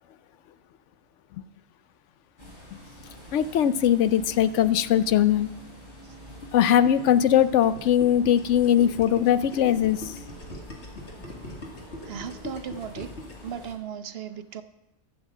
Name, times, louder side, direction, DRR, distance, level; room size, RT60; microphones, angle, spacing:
sound 1, 2.4-13.7, equal, 45° left, 3.3 m, -45 dB
voice 1, 3.3-5.5 6.5-10.2, left 10 dB, 85° left, 14 dB, 1.0 m, -21 dB
Gurgling, 6.4-13.5, left 1 dB, 70° left, 2.4 m, -42 dB
voice 2, 12.0-13.1 13.4-14.6, right 8 dB, 65° right, 11 dB, 0.9 m, -36 dB
12.5 x 7.3 x 7.4 m, 0.89 s
omnidirectional pair, 1.2 m